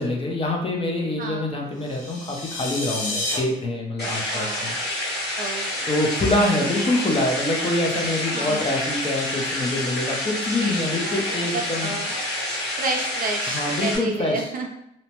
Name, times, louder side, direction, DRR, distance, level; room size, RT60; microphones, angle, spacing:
voice 1, 0.0-4.7 5.0-5.1 5.9-11.9 13.5-14.5, left 1 dB, 25° left, 0 dB, 0.6 m, -25 dB
voice 2, 1.2-1.5 4.3-4.7 5.4-5.9 8.3-8.7 10.6-12.2 12.8-14.7, right 3 dB, 45° right, 2 dB, 0.5 m, -31 dB
sound 1, 1.8-3.4, left 2 dB, 80° left, 0.6 m, -30 dB
sound 2, 4.0-14.0, left 1 dB, 60° left, 1.4 m, -28 dB
2.7 x 2.1 x 2.9 m, 0.78 s
cardioid pair, 90°, 20 cm